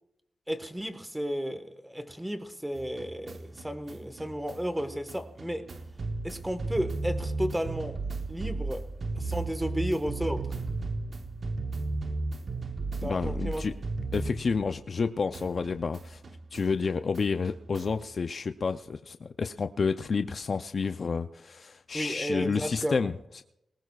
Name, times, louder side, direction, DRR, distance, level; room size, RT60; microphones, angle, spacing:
voice 1, 0.5-5.7 6.2-8.0 8.3-8.9 9.1-10.5 13.0-13.6 21.9-23.1, equal, 5° right, 1.3 m, -33 dB
sound 1, 2.8-15.0 15.3-18.1, right 3 dB, 50° right, 0.9 m, -35 dB
voice 2, 13.0-13.8 14.1-16.2 16.5-23.4, left 5 dB, 50° left, 0.5 m, -30 dB
20.5 x 19.5 x 2.4 m
wide cardioid pair, 105°, 0 cm